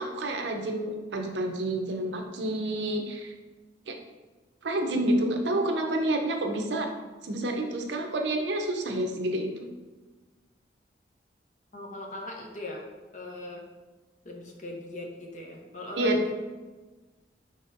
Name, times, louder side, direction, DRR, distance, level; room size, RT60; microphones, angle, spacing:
voice 1, 0.0-3.3 3.9-4.0 4.6-6.9 7.2-9.7 16.0-16.3, right 1 dB, 75° right, 3 dB, 0.6 m, -29 dB
voice 2, 11.7-12.8 13.1-13.6 14.2-16.3, left 1 dB, 45° left, 0 dB, 0.7 m, -40 dB
5.1 x 4.0 x 2.6 m, 1.2 s
head